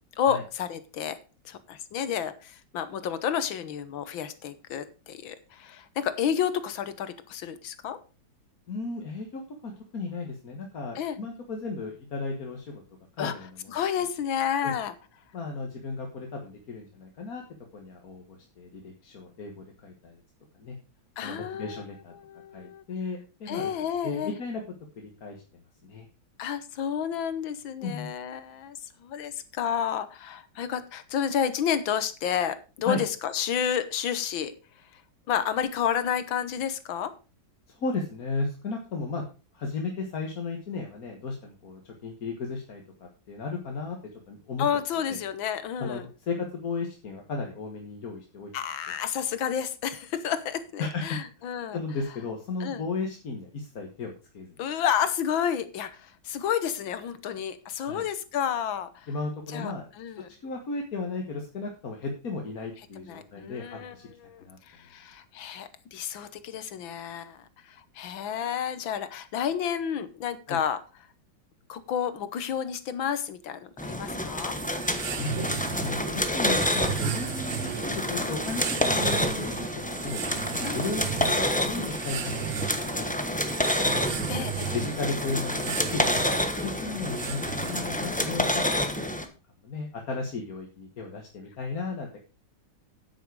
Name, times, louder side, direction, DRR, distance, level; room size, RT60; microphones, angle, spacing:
voice 1, 0.2-1.2 1.4-8.0 10.9-11.2 13.2-13.3 13.7-14.9 21.2-21.8 22.2-22.8 23.5-24.3 26.4-34.5 35.3-37.1 44.6-46.1 48.5-51.8 52.6-52.8 54.6-59.1 59.5-60.3 63.1-63.9 64.2-70.8 71.7-74.6 80.6-80.8 84.3-84.7, left 8 dB, 75° left, 13 dB, 1.8 m, -30 dB
voice 2, 8.7-12.8 13.2-13.7 14.6-14.7 15.3-17.4 17.7-20.2 20.6-20.8 21.2-22.1 22.5-23.7 24.0-24.6 25.0-25.4 25.8-26.1 27.8-28.1 32.8-33.0 37.7-39.2 39.5-42.8 43.3-44.0 44.3-44.6 45.1-45.2 45.8-48.5 50.8-51.2 51.7-54.6 57.9-58.0 59.1-59.9 60.2-64.1 64.4-64.6 70.5-70.6 75.2-80.2 80.7-81.1 81.5-82.3 82.6-83.0 84.7-89.0 89.6-92.2, left 3 dB, 50° left, 2 dB, 1.8 m, -35 dB
sound 1, 73.8-89.3, left 1 dB, 10° left, 0.6 m, -28 dB
sound 2, 74.3-88.2, right 11 dB, 70° right, 0.7 m, -36 dB
9.5 x 8.8 x 4.8 m, 0.32 s
omnidirectional pair, 2.2 m